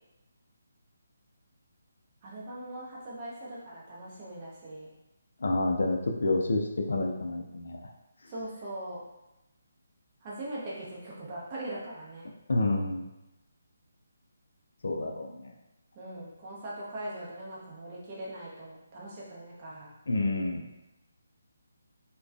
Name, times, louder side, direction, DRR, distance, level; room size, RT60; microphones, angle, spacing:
voice 1, 2.2-4.9 8.3-9.0 10.2-12.3 15.0-15.1 15.9-19.9, right 1 dB, 30° right, -6 dB, 0.7 m, -41 dB
voice 2, 5.4-7.9 12.5-13.1 14.8-15.5 20.1-20.6, left 2 dB, 65° left, 1 dB, 0.3 m, -29 dB
2.3 x 2.2 x 2.4 m, 0.95 s
figure-of-eight pair, 145°, 0 cm